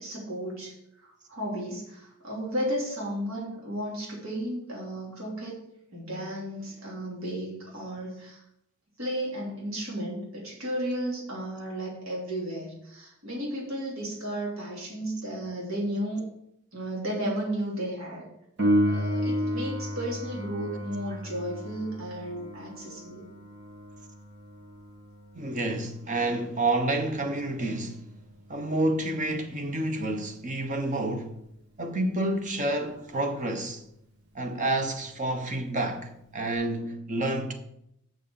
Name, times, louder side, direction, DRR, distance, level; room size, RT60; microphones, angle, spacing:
voice 1, 0.0-5.6 5.9-8.4 9.0-16.3 16.7-18.2 18.8-23.3, right 1 dB, 75° right, 3.0 m, -34 dB
Piano, 18.6-29.0 36.5-36.6, equal, 55° right, 1.8 m, -33 dB
voice 2, 25.3-28.1 28.5-31.4 31.8-33.8 34.3-37.5, right 2 dB, 35° right, 1.1 m, -29 dB
6.5 x 6.4 x 7.0 m
head